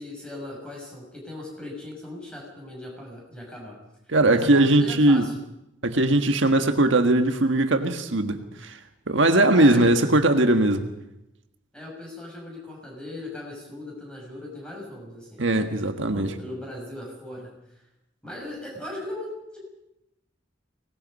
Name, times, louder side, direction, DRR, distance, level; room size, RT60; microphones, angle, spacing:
voice 1, 0.0-3.8 4.3-5.3 9.5-9.9 11.7-15.4 16.0-17.8 18.2-19.6, left 1 dB, 5° left, -2 dB, 6.7 m, -38 dB
voice 2, 4.1-5.2 5.8-8.8 9.1-10.9 15.4-16.3, right 2 dB, 70° right, 7 dB, 1.5 m, -20 dB
24.5 x 19.5 x 5.4 m, 0.87 s
head